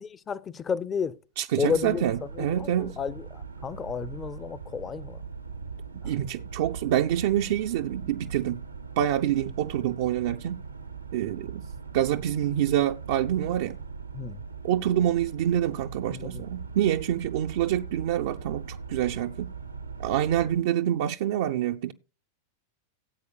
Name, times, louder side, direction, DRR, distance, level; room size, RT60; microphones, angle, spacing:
voice 1, 0.0-1.2 1.6-5.2 6.0-6.1 14.1-14.4 16.1-16.4, left 6 dB, 20° left, 0.5 m, -32 dB
voice 2, 1.4-3.0 6.0-8.6 9.0-10.6 11.1-11.7 11.9-13.8 14.6-19.5 20.0-21.9, right 11 dB, 55° right, 0.4 m, -26 dB
sound 1, 1.7-20.6, right 5 dB, 80° right, 0.8 m, -40 dB
17.5 x 8.3 x 2.3 m
figure-of-eight pair, 90°, 0 cm